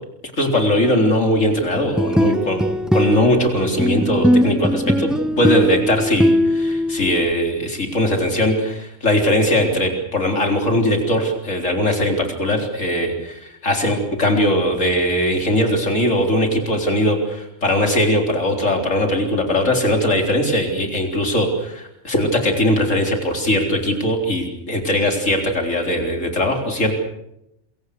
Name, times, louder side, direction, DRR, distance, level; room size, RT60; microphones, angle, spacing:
voice 1, 0.4-5.1 5.4-26.9, left 1 dB, 85° left, 3 dB, 4.3 m, -20 dB
sound 1, 1.8-7.3, equal, ahead, 0.8 m, -20 dB
27.5 x 23.5 x 6.7 m, 0.82 s
omnidirectional pair, 1.3 m